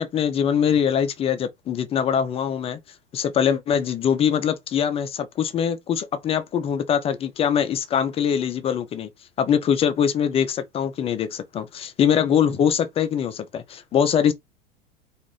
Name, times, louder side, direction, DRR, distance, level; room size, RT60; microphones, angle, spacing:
voice 1, 0.0-2.8 3.1-9.1 9.4-14.3, left 8 dB, 20° left, 0.3 m, -23 dB
2.5 x 2.4 x 3.0 m
hypercardioid pair, 90°, 29 cm